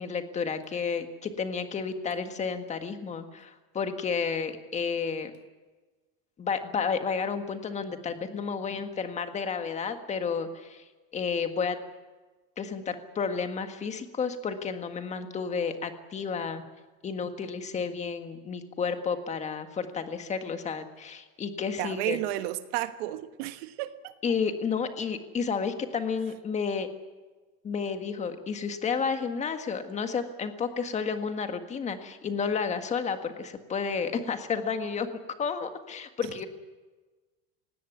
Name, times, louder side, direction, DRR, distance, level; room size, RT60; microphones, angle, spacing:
voice 1, 0.0-5.3 6.4-10.8 11.1-11.8 12.6-16.6 17.0-22.2 24.2-26.9 27.6-35.1 35.4-36.5, left 5 dB, 20° left, 8 dB, 1.6 m, -31 dB
voice 2, 21.8-24.1, right 15 dB, 70° right, 10 dB, 1.5 m, -32 dB
19.0 x 16.5 x 9.4 m, 1.3 s
cardioid pair, 155°, 32 cm